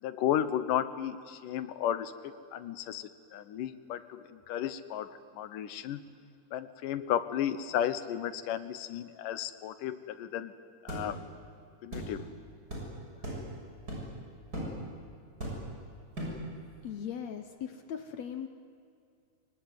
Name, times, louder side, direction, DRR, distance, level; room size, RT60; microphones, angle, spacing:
voice 1, 0.0-6.0 6.5-10.5 10.8-11.2 11.8-12.3, left 10 dB, 85° left, 12 dB, 2.6 m, -34 dB
sound 1, 10.9-11.1 11.9-12.1 12.7-12.9 13.2-13.5 13.9-14.1 14.5-14.8 15.4-15.7 16.1-16.4, right 1 dB, 25° right, 7.4 m, -37 dB
voice 2, 16.8-18.5, left 8 dB, 65° left, 7 dB, 1.9 m, -39 dB
24.5 x 23.5 x 9.5 m, 2.4 s
omnidirectional pair, 3.7 m